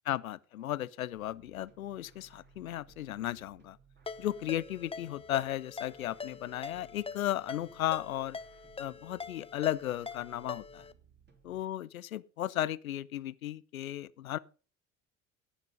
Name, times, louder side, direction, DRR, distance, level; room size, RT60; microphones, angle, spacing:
voice 1, 0.0-3.8 4.2-8.4 8.8-10.9 11.4-14.4, left 13 dB, 85° left, 0.6 m, -35 dB
sound 1, 1.1-11.6, right 5 dB, 25° right, 2.9 m, -62 dB
Ringtone, 4.1-10.9, left 5 dB, 15° left, 0.8 m, -44 dB
17.0 x 6.1 x 5.1 m
hypercardioid pair, 70°, 40 cm